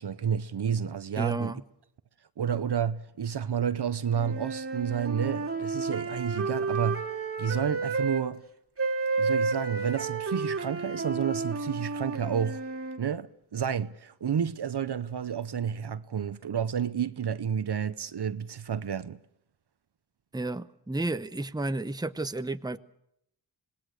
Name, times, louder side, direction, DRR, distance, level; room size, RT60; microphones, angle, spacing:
voice 1, 0.0-1.5 2.4-7.0 7.4-8.4 9.2-12.6 13.0-19.2, right 8 dB, 60° right, 0.9 m, -30 dB
voice 2, 1.2-1.6 20.3-22.8, right 2 dB, 10° right, 0.9 m, -32 dB
sound 1, 4.1-8.2 8.8-13.0, right 4 dB, 30° right, 2.3 m, -31 dB
26.0 x 19.5 x 6.5 m
cardioid pair, 50°, 46 cm